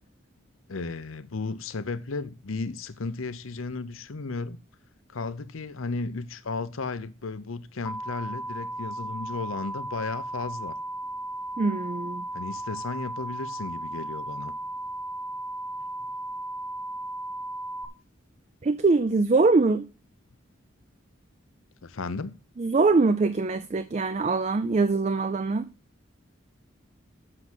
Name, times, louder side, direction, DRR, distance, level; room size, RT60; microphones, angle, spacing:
voice 1, 0.7-4.6 5.1-10.8 12.3-14.5 21.8-22.4, left 3 dB, 80° left, 0.7 m, -34 dB
sound 1, 7.9-17.9, right 1 dB, 10° left, 0.9 m, -35 dB
voice 2, 11.6-12.2 18.6-19.9 22.6-25.7, right 3 dB, 35° right, 0.4 m, -23 dB
7.8 x 6.1 x 6.1 m
head